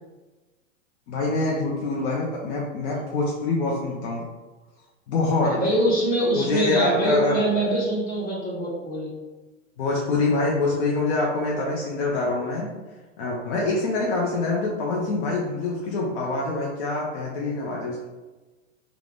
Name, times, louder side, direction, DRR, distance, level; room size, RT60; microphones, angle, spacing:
voice 1, 1.1-4.2 5.1-5.5 6.3-7.4 9.8-12.7 13.2-18.0, left 2 dB, 60° left, -3 dB, 0.8 m, -25 dB
voice 2, 5.4-9.1, equal, 20° left, -6 dB, 1.5 m, -24 dB
3.4 x 2.4 x 3.8 m, 1.2 s
hypercardioid pair, 120°, 39 cm